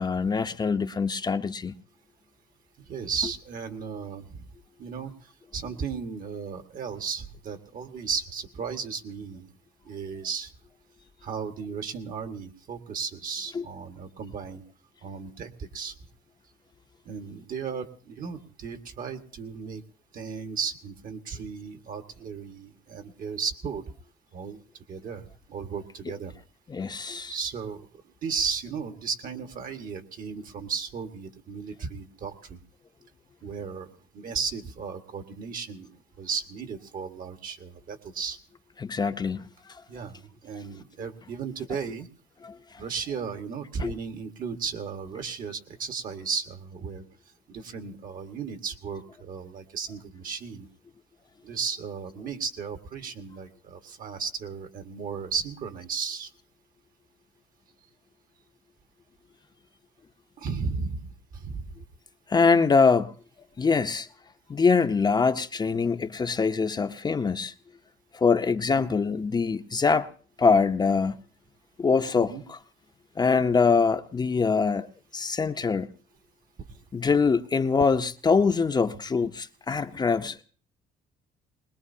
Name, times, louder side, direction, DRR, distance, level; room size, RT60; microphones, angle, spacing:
voice 1, 0.0-1.7 13.5-13.6 26.7-27.3 38.8-39.4 42.4-42.5 43.8-43.9 62.3-63.1 63.6-64.1 64.5-67.5 68.1-70.1 70.4-71.2 71.8-72.6 73.2-74.9 75.1-75.9 76.9-80.4, left 5 dB, 25° left, 0.7 m, -24 dB
voice 2, 2.8-4.4 4.8-5.1 5.5-9.5 9.9-10.5 11.2-14.6 15.0-15.9 17.1-19.8 20.1-23.8 24.3-24.6 24.9-26.3 27.3-27.9 28.2-32.6 33.4-35.9 36.2-38.4 39.9-42.1 42.8-47.0 47.5-50.7 51.4-56.3 60.4-61.7 68.6-68.9 72.1-72.4 76.7-76.8, right 6 dB, 55° right, 1.7 m, -35 dB
22.0 x 20.5 x 2.8 m
cardioid pair, 110°, 17 cm